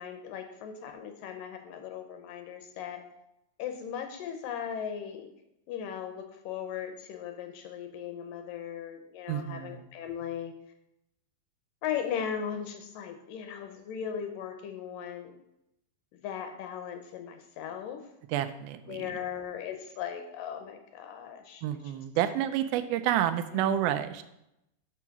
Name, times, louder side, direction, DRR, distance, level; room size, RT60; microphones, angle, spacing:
voice 1, 0.0-3.0 3.6-5.3 5.7-10.5 11.8-15.4 16.1-18.1 18.9-21.6 23.5-23.9, left 8 dB, 80° left, 5 dB, 2.2 m, -38 dB
voice 2, 9.3-9.9 18.3-19.2 21.6-24.2, right 11 dB, 85° right, 10 dB, 2.4 m, -29 dB
6.2 x 6.0 x 5.8 m, 0.83 s
omnidirectional pair, 4.3 m